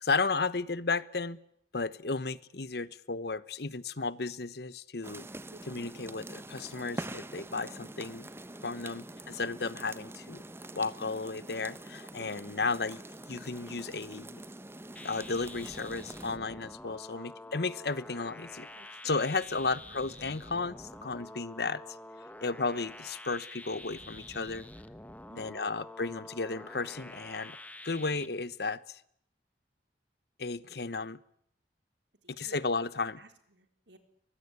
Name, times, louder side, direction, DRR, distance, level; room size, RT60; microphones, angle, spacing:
voice 1, 0.0-1.4 1.7-5.3 5.7-8.3 8.6-10.4 10.7-13.0 13.3-14.4 15.0-18.7 19.0-21.8 22.4-24.7 25.4-27.6 27.8-29.0 30.4-31.2 32.3-33.2, left 4 dB, 65° left, 18 dB, 1.1 m, -34 dB
sound 1, 5.0-16.4, right 1 dB, 15° right, 1.0 m, -45 dB
voice 2, 5.5-5.9 8.9-9.2 17.1-17.5 18.6-19.1 25.3-25.8 27.9-28.1 32.2-32.8 33.2-34.0, right 2 dB, 85° right, 8 dB, 4.1 m, -59 dB
sound 2, 15.0-28.3, left 1 dB, 10° left, 1.2 m, -47 dB
23.0 x 20.5 x 9.7 m, 0.69 s
head